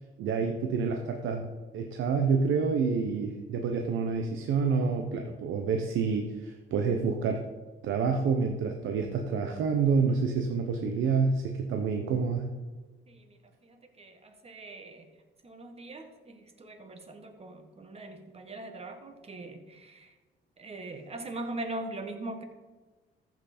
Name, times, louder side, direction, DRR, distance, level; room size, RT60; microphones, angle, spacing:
voice 1, 0.2-1.5 1.7-7.4 7.8-12.5, right 5 dB, 80° right, 4 dB, 0.9 m, -28 dB
voice 2, 13.1-15.1 15.4-20.1 20.6-22.4, right 2 dB, 30° right, 6 dB, 1.5 m, -41 dB
14.0 x 6.0 x 4.3 m, 1.2 s
cardioid pair, 90°, 20 cm